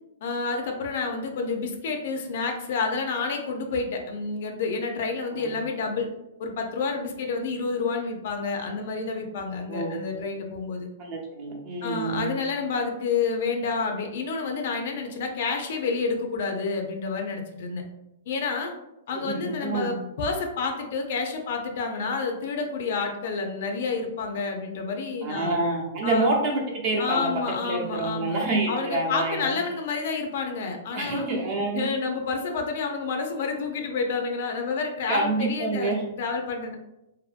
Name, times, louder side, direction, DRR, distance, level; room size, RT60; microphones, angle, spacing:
voice 1, 0.2-6.1 6.4-10.9 11.8-17.8 18.3-18.7 19.1-25.6 26.0-26.3 27.0-28.3 28.7-31.3 31.7-36.8, left 4 dB, 60° left, 4 dB, 0.5 m, -29 dB
voice 2, 9.7-10.0 11.0-12.3 19.1-20.0 25.2-27.3 27.6-29.6 30.9-31.9 35.1-36.0, right 2 dB, 40° right, -1 dB, 0.7 m, -27 dB
2.6 x 2.5 x 2.4 m, 0.91 s
hypercardioid pair, 150°, 0 cm